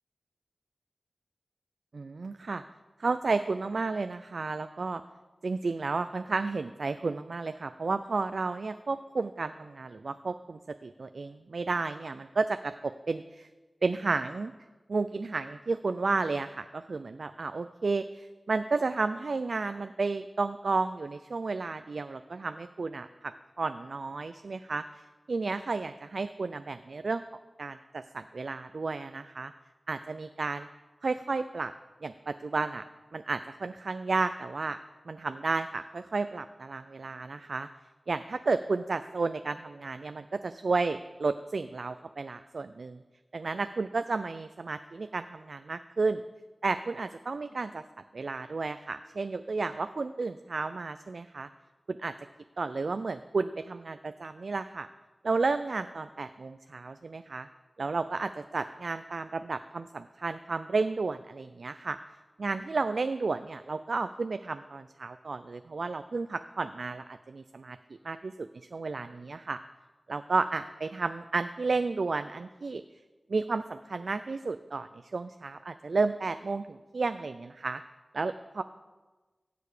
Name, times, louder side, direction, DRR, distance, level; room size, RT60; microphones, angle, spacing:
voice 1, 1.9-2.6 3.0-5.0 5.4-12.7 13.1-13.5 13.8-14.5 14.9-25.0 25.3-27.2 27.6-29.5 29.9-30.7 31.0-31.7 32.0-32.8 33.1-34.8 35.1-37.7 38.1-43.0 43.3-46.2 46.6-47.8 48.1-51.5 51.9-52.1 52.6-54.9 55.2-57.5 57.8-62.0 62.4-67.8 68.0-69.6 70.1-72.8 73.3-77.8 78.1-78.6, right 3 dB, 75° right, 10 dB, 0.4 m, -32 dB
16.5 x 6.8 x 5.0 m, 1.2 s
wide cardioid pair, 55°, 0 cm